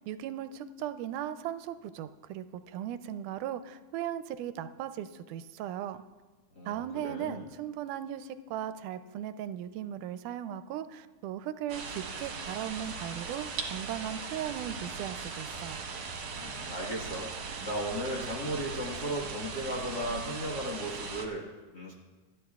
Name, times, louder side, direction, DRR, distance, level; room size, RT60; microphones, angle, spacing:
voice 1, 0.0-6.0 6.7-15.8, right 10 dB, 85° right, 12 dB, 2.0 m, -37 dB
voice 2, 6.5-7.5 16.3-17.3 17.6-21.9, equal, 40° left, -3 dB, 1.7 m, -36 dB
sound 1, 11.7-21.3, right 5 dB, 60° right, 2.0 m, -39 dB
28.0 x 10.5 x 2.4 m, 1.3 s
omnidirectional pair, 3.6 m